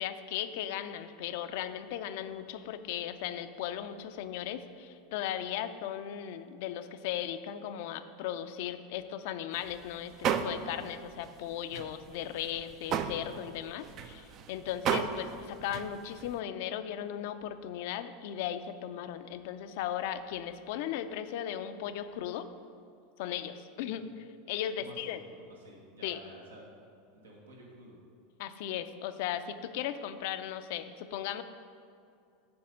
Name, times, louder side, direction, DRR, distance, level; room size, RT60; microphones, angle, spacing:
voice 1, 0.0-22.5 23.2-25.2 26.0-26.2 28.4-31.4, left 10 dB, 60° left, 11 dB, 0.4 m, -37 dB
sound 1, 9.6-9.8 10.1-10.9 11.2-11.3 11.7-16.4, right 7 dB, 45° right, 0.5 m, -34 dB
voice 2, 24.8-25.2 25.6-26.7 27.1-28.0, right 1 dB, 85° right, -2 dB, 1.4 m, -51 dB
6.9 x 4.7 x 6.4 m, 2.5 s
hypercardioid pair, 85°, 0 cm